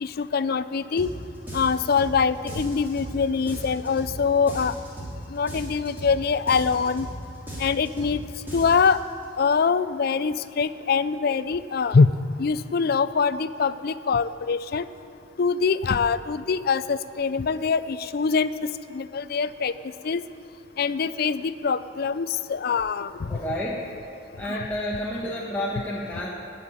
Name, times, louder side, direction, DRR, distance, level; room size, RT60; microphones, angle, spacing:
voice 1, 0.0-1.1 1.5-4.7 5.3-7.1 7.6-8.2 8.5-9.0 9.4-12.1 12.4-14.8 15.4-18.5 18.9-19.7 20.0-20.2 20.8-23.4 24.4-24.6, left 5 dB, 50° left, 14 dB, 0.4 m, -24 dB
sound 1, 1.0-1.2 1.5-2.2 2.5-3.2 3.5-4.2 4.5-5.2 5.5-6.2 6.5-7.2 7.5-8.2 8.5-8.9, right 1 dB, 10° right, 3.1 m, -36 dB
voice 2, 23.3-23.9 24.3-26.3, left 1 dB, 10° left, -6 dB, 1.2 m, -30 dB
16.0 x 5.8 x 9.5 m, 2.6 s
head